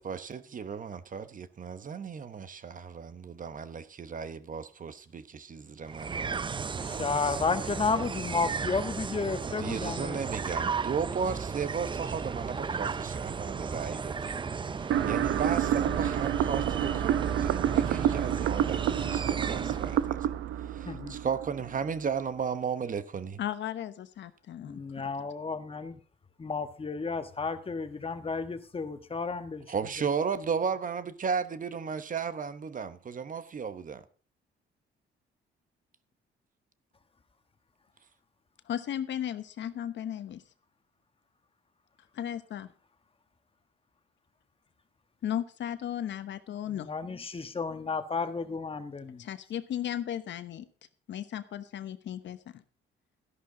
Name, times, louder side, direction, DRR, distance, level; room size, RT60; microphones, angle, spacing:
voice 1, 0.0-6.4 9.6-14.4 15.1-20.2 20.7-23.4 29.7-34.0, right 6 dB, 40° right, 1.0 m, -35 dB
sound 1, 5.8-20.1, right 5 dB, 25° right, 0.5 m, -35 dB
voice 2, 6.9-10.2 20.9-21.2 24.6-26.0 26.4-29.6 46.7-49.2, left 4 dB, 30° left, 1.3 m, -32 dB
sound 2, 14.9-21.9, right 11 dB, 90° right, 0.7 m, -29 dB
voice 3, 23.4-25.1 38.7-40.4 42.1-42.7 45.2-46.9 49.2-50.7 51.1-52.6, left 10 dB, 65° left, 1.0 m, -35 dB
13.0 x 11.5 x 3.8 m
cardioid pair, 90°, 20 cm